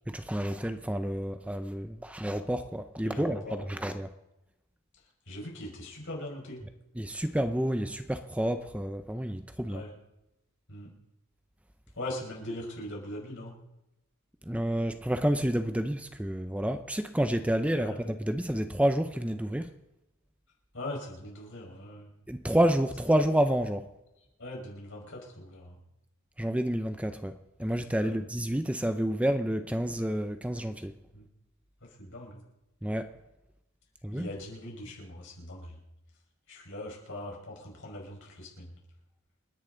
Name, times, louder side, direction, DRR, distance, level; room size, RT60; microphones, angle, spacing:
voice 1, 0.1-4.1 7.0-9.8 14.5-19.7 22.3-23.9 26.4-27.3 27.6-30.9 32.8-33.1 34.0-34.3, right 1 dB, 5° right, 8 dB, 0.6 m, -29 dB
voice 2, 3.0-3.7 5.3-6.7 9.7-9.9 10.7-10.9 12.0-13.6 17.8-18.0 20.7-22.1 24.4-25.8 28.0-28.1 31.1-31.3 31.8-32.4 34.1-35.8 36.5-38.8, left 1 dB, 60° left, -1 dB, 5.5 m, -41 dB
28.5 x 10.5 x 3.9 m, 0.94 s
head